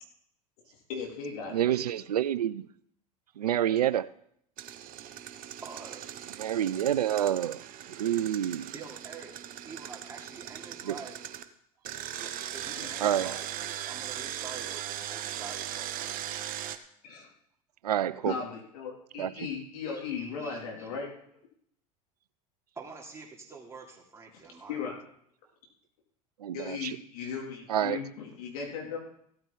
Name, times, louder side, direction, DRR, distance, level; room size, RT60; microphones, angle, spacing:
voice 1, 0.7-1.6 12.8-12.9 17.0-17.3 18.3-21.1 24.7-25.0 26.5-29.0, left 6 dB, 70° left, 3.3 m, -37 dB
voice 2, 1.5-2.7 3.4-4.1 6.4-7.6 8.0-8.7 10.8-11.0 13.0-13.4 17.8-18.3 19.2-19.3 26.4-27.0 27.7-28.0, right 11 dB, 85° right, 0.4 m, -28 dB
Engine, 4.6-11.4 11.9-16.8, right 11 dB, 45° right, 1.0 m, -39 dB
voice 3, 5.6-6.1 8.7-9.3 9.6-11.2 12.2-16.3 19.9-20.9 22.7-24.8, right 4 dB, 15° right, 3.2 m, -46 dB
16.0 x 8.9 x 4.1 m
hypercardioid pair, 80°, 19 cm